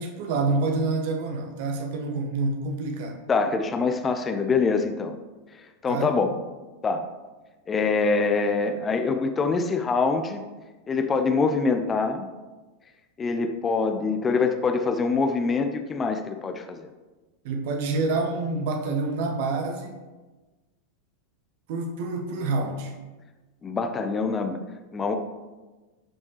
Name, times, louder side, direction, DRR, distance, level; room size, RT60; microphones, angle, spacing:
voice 1, 0.0-3.2 5.9-6.1 17.4-20.0 21.7-22.9, right 3 dB, 50° right, 4 dB, 1.1 m, -27 dB
voice 2, 3.3-5.1 5.8-6.3 6.8-7.1 7.7-10.4 10.9-12.3 13.2-16.9 23.6-24.6 24.9-25.2, left 4 dB, 20° left, 6 dB, 0.7 m, -24 dB
12.0 x 5.4 x 3.2 m, 1.2 s
figure-of-eight pair, 90°, 0 cm